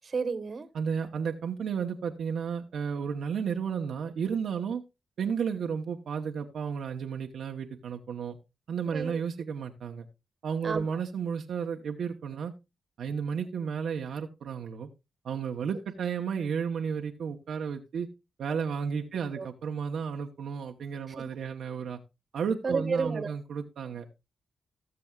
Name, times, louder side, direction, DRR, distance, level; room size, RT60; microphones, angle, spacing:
voice 1, 0.0-0.7 8.9-9.2 10.6-11.0 19.3-19.5 21.1-21.2 22.6-23.3, right 4 dB, 45° right, 1.3 m, -31 dB
voice 2, 0.7-4.8 5.2-8.4 8.7-10.1 10.4-12.5 13.0-14.9 15.2-18.1 18.4-22.0 22.3-24.1, right 6 dB, 75° right, 0.9 m, -33 dB
16.5 x 7.0 x 2.3 m
cardioid pair, 85°, 0 cm